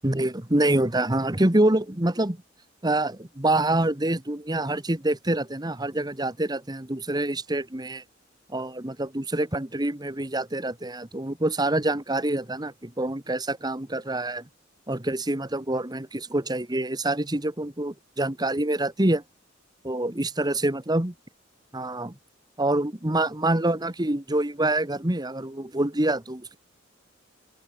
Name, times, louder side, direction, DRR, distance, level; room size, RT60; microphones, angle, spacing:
voice 1, 0.0-2.4 2.8-8.0 8.5-14.4 14.9-19.2 19.8-21.1 21.7-22.1 22.6-26.6, right 1 dB, 20° right, 1.6 m, -26 dB
open air
head